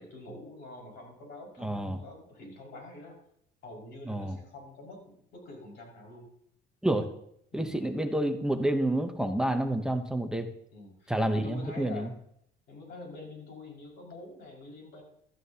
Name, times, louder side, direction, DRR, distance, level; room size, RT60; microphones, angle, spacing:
voice 1, 0.0-3.2 3.6-6.3 7.5-7.7 10.7-12.1 12.7-15.0, left 2 dB, 60° left, -1 dB, 5.5 m, -46 dB
voice 2, 1.6-2.0 4.1-4.4 6.8-7.1 7.5-10.5 11.1-12.1, right 1 dB, 5° right, 6 dB, 0.8 m, -29 dB
16.0 x 13.0 x 2.9 m, 0.70 s
cardioid pair, 155°, 19 cm